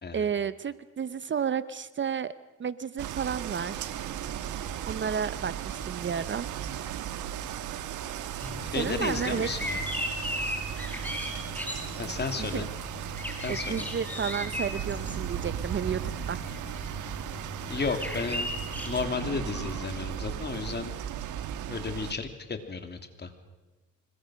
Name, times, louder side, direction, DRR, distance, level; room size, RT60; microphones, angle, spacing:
voice 1, 0.1-2.3 2.6-4.0 4.8-6.5 8.8-9.5 12.4-12.7 13.5-16.7, right 7 dB, 40° right, 15 dB, 0.8 m, -32 dB
sound 1, 3.0-22.1, right 10 dB, 80° right, 1.5 m, -36 dB
sound 2, 8.4-19.0, left 1 dB, 5° left, 5.0 m, -37 dB
voice 2, 8.7-9.9 12.0-12.7 13.4-13.8 17.7-18.5 18.8-20.9 21.7-23.3, left 4 dB, 35° left, 7 dB, 3.0 m, -33 dB
25.5 x 22.0 x 6.5 m, 1.2 s
cardioid pair, 90°, 30 cm